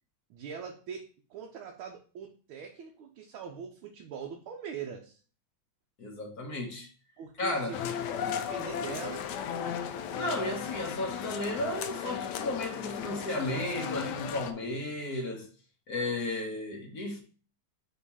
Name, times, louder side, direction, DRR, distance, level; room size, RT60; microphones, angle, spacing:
voice 1, 0.3-5.2 7.2-9.8 14.5-14.8, right 7 dB, 85° right, 1.6 m, -43 dB
voice 2, 6.0-6.9 7.4-7.8 10.1-15.5 15.9-17.2, left 2 dB, 50° left, 1.6 m, -34 dB
sound 1, 7.7-14.5, left 8 dB, 75° left, 1.1 m, -35 dB
5.9 x 3.0 x 5.5 m
omnidirectional pair, 2.2 m